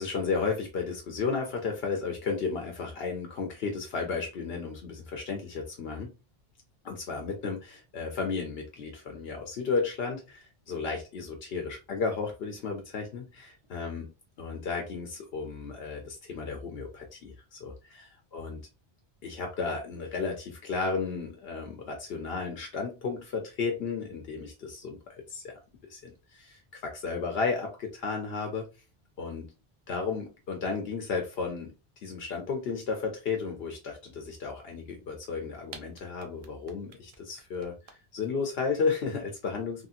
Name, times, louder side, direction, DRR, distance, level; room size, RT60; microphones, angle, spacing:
voice 1, 0.0-6.1 6.8-14.1 14.4-18.6 19.2-25.0 25.3-25.6 25.9-28.6 29.2-29.5 29.9-31.7 32.0-39.9, left 4 dB, 75° left, 2 dB, 0.9 m, -33 dB
sound 1, 35.7-38.2, right 4 dB, 45° right, 0.5 m, -47 dB
3.0 x 2.7 x 2.4 m, 0.30 s
omnidirectional pair, 1.1 m